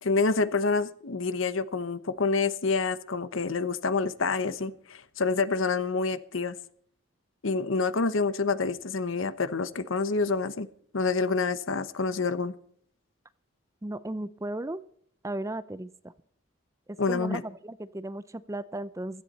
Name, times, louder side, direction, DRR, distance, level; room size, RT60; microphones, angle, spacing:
voice 1, 0.0-6.5 7.4-10.7 10.9-12.5 17.0-17.4, left 4 dB, 75° left, 0.9 m, -27 dB
voice 2, 13.8-14.8 15.2-16.1 16.9-19.2, right 1 dB, 15° right, 0.5 m, -36 dB
16.0 x 13.0 x 4.1 m
head